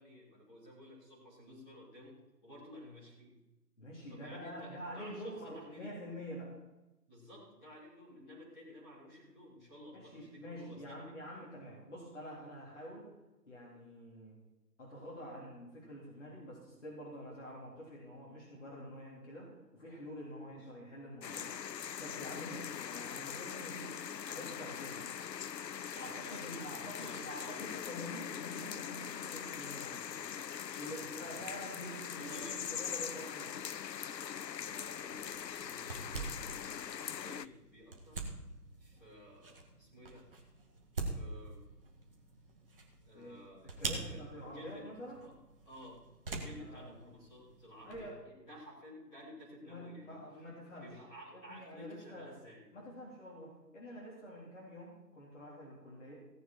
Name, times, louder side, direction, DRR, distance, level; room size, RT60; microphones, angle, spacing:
voice 1, 0.0-3.3 4.1-5.9 7.1-11.1 20.4-20.7 25.9-27.7 30.7-31.5 32.1-32.6 34.6-36.3 36.8-38.2 38.8-40.3 41.0-41.6 43.0-44.8 45.2-45.3 45.6-46.0 46.2-50.2 50.8-52.6, equal, ahead, -12 dB, 1.2 m, -54 dB
voice 2, 3.8-6.5 9.9-13.1 13.5-14.4 14.8-21.5 22.0-24.0 24.2-25.1 26.0-30.2 30.7-33.6 43.1-43.4 43.6-45.2 46.6-47.2 47.8-48.2 49.6-50.9 51.3-52.4 52.7-56.1, equal, 45° left, -4 dB, 3.7 m, -47 dB
sound 1, 21.2-37.5, left 8 dB, 80° left, 0.6 m, -42 dB
sound 2, 34.6-48.1, right 3 dB, 35° right, 2.0 m, -45 dB
17.0 x 8.9 x 4.5 m, 1.0 s
figure-of-eight pair, 155°, 49 cm